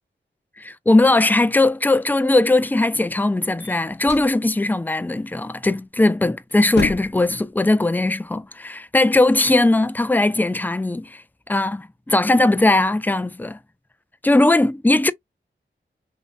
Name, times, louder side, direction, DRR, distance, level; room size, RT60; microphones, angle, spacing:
voice 1, 0.6-11.2 11.5-13.6 14.2-15.1, left 2 dB, 10° left, 0.4 m, -19 dB
sound 1, 3.6-4.4 6.0-6.2 6.5-7.3, left 4 dB, 55° left, 0.7 m, -29 dB
3.1 x 2.6 x 2.3 m
cardioid pair, 40°, 20 cm